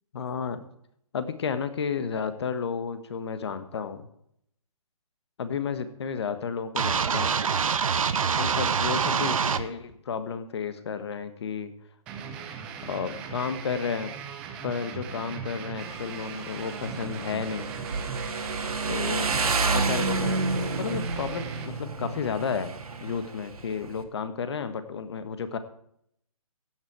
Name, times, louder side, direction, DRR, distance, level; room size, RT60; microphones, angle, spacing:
voice 1, 0.1-0.6 1.1-4.1 5.4-7.4 8.4-11.7 12.8-14.1 14.6-17.7 18.9-19.3 19.6-22.7 23.0-25.6, left 6 dB, 45° left, 11 dB, 1.5 m, -32 dB
sound 1, 6.8-9.6, right 6 dB, 65° right, 1.1 m, -25 dB
sound 2, 12.1-21.7, right 6 dB, 5° right, 0.4 m, -39 dB
Motorcycle, 15.8-24.0, right 4 dB, 90° right, 2.4 m, -30 dB
15.0 x 9.2 x 4.8 m, 0.72 s
hypercardioid pair, 165°, 19 cm